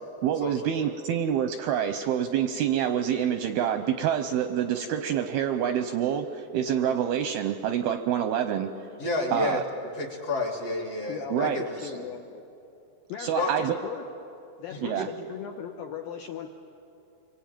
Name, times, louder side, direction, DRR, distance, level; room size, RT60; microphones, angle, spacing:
voice 1, 0.2-8.7 9.3-9.6 11.3-11.9 13.2-13.8 14.8-15.1, right 9 dB, 80° right, 8 dB, 2.3 m, -27 dB
voice 2, 9.0-9.6 10.0-11.7 13.4-13.5 14.7-15.1, left 2 dB, 45° left, 1 dB, 2.3 m, -30 dB
voice 3, 11.1-12.4 13.1-14.1 14.6-16.5, left 9 dB, 75° left, 4 dB, 2.2 m, -38 dB
27.5 x 23.5 x 9.0 m, 2.8 s
omnidirectional pair, 5.2 m